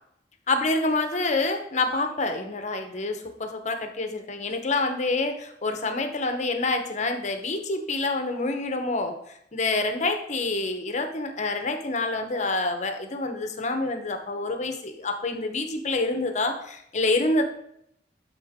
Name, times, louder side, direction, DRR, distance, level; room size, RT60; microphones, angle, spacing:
voice 1, 0.5-9.1 9.5-17.4, left 2 dB, 45° left, 6 dB, 0.9 m, -27 dB
12.0 x 4.0 x 3.6 m, 0.73 s
head